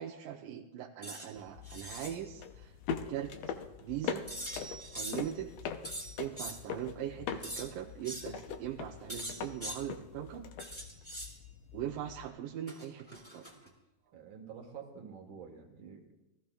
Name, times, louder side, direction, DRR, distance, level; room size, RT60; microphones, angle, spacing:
voice 1, 0.0-2.7 3.1-3.3 3.8-4.2 4.9-5.5 6.2-10.5 11.7-13.4, right 11 dB, 85° right, 0 dB, 2.3 m, -40 dB
sound 1, 1.0-1.3 1.6-2.1 4.3-5.3 5.8-6.6 7.4-7.7 8.0-8.3 9.1-9.8 10.6-11.3 12.7-13.7, right 1 dB, 5° left, 1.6 m, -42 dB
sound 2, 1.4-12.3, left 7 dB, 75° left, 1.5 m, -42 dB
voice 2, 14.1-16.1, right 6 dB, 55° right, 3 dB, 1.6 m, -48 dB
20.0 x 14.0 x 2.3 m, 0.94 s
omnidirectional pair, 3.8 m